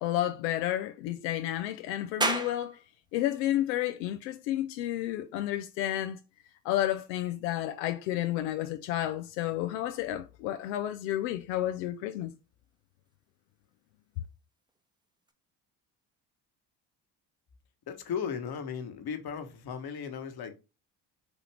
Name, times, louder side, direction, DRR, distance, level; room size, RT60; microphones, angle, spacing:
voice 1, 0.0-2.8 3.1-6.2 6.6-12.3, left 13 dB, 90° left, 0.5 m, -31 dB
sound 1, 2.2-15.3, right 2 dB, 10° right, 0.8 m, -42 dB
voice 2, 17.9-20.6, left 7 dB, 50° left, 1.1 m, -36 dB
6.2 x 2.5 x 3.3 m
supercardioid pair, 70°, 48 cm